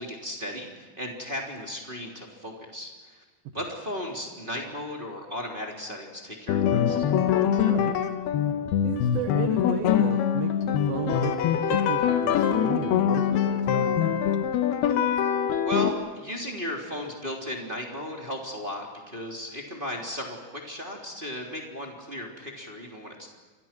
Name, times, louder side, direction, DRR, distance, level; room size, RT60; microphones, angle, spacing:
voice 1, 0.0-3.2 3.5-7.1 15.6-23.3, left 1 dB, 15° right, -1 dB, 3.2 m, -35 dB
sound 1, 6.5-15.9, left 9 dB, 80° left, 3.2 m, -24 dB
voice 2, 7.6-8.0 8.8-13.9, right 9 dB, 70° right, 7 dB, 2.8 m, -34 dB
29.5 x 26.0 x 6.1 m, 1.3 s
omnidirectional pair, 4.5 m